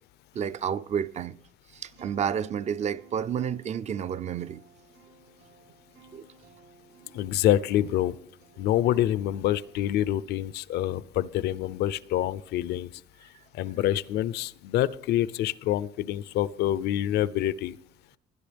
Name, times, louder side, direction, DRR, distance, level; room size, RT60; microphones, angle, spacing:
voice 1, 0.3-1.4 1.7-4.6 6.1-6.2, right 8 dB, 40° right, 0.5 m, -30 dB
Acoustic guitar, 1.9-9.9, right 3 dB, 80° right, 4.9 m, -56 dB
voice 2, 7.1-8.2 8.6-12.9 13.5-17.8, left 12 dB, 75° left, 0.6 m, -26 dB
20.5 x 9.9 x 3.4 m
cardioid pair, 110°, 17 cm